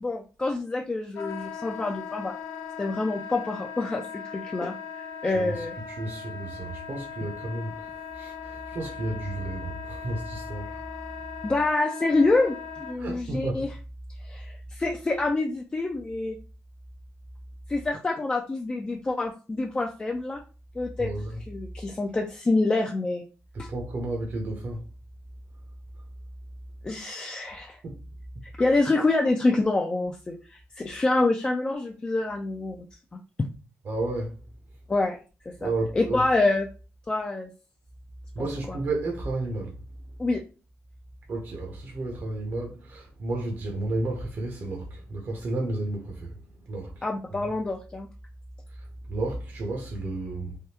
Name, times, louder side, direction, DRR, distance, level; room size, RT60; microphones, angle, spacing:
voice 1, 0.0-2.3 2.8-4.7 5.2-5.7 11.4-13.7 14.2-16.4 17.7-20.4 20.8-21.1 21.5-23.2 23.6-23.7 26.8-27.8 28.6-32.8 33.1-33.2 34.9-35.2 35.5-35.7 36.0-36.7 37.1-37.5 40.2-40.4 47.0-48.1, left 2 dB, 20° left, 0.3 m, -26 dB
Wind instrument woodwind instrument, 1.2-12.9, left 7 dB, 90° left, 0.6 m, -39 dB
voice 2, 5.2-10.8 13.0-13.7 21.0-21.4 23.5-24.8 26.0-26.1 27.8-28.4 33.8-34.5 35.6-36.2 38.3-39.8 41.3-47.5 48.7-50.6, right 2 dB, 45° right, 0.7 m, -32 dB
3.4 x 2.2 x 2.8 m
cardioid pair, 115°, 5 cm